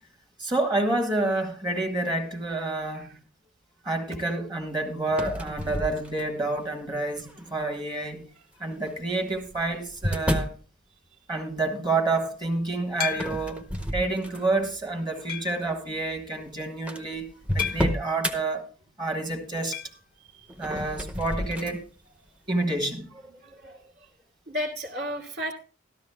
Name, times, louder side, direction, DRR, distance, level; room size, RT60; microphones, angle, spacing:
voice 1, 0.4-3.1 3.8-8.3 8.6-10.5 11.3-13.6 13.9-18.7 19.0-19.8 20.6-21.8 22.5-23.1, right 2 dB, 20° right, 1.3 m, -28 dB
sound 1, 5.1-6.5 7.2-7.6 8.7-10.6 13.1-14.7 15.1-15.4 16.2-16.3 16.4-16.5 16.9-18.4 20.5-21.8, equal, 5° right, 0.7 m, -31 dB
Two Bottles taping each other, 13.0-13.7 14.3-14.4 15.3-15.7 17.6-18.1 19.7-20.0 20.3-20.4 20.6-20.7 22.7-22.8, left 9 dB, 45° left, 0.5 m, -33 dB
voice 2, 23.3-23.9 24.5-25.5, equal, 65° right, 1.7 m, -34 dB
13.5 x 12.5 x 2.2 m
head